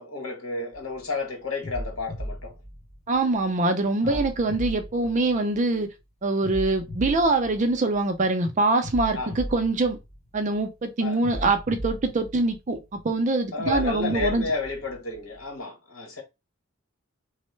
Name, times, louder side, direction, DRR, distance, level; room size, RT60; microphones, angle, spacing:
voice 1, 0.0-2.5 4.0-4.3 9.1-9.3 11.0-11.2 13.5-16.2, left 3 dB, 85° left, 1.1 m, -31 dB
Distant heartbeat, 0.7-1.0 1.6-3.4 4.0-5.8 6.4-8.2 8.8-10.6 11.2-13.0 13.6-15.4, equal, 35° left, 1.1 m, -37 dB
voice 2, 3.1-5.9 6.2-10.0 10.3-14.5, right 2 dB, 35° right, 0.5 m, -24 dB
3.0 x 2.0 x 3.1 m
head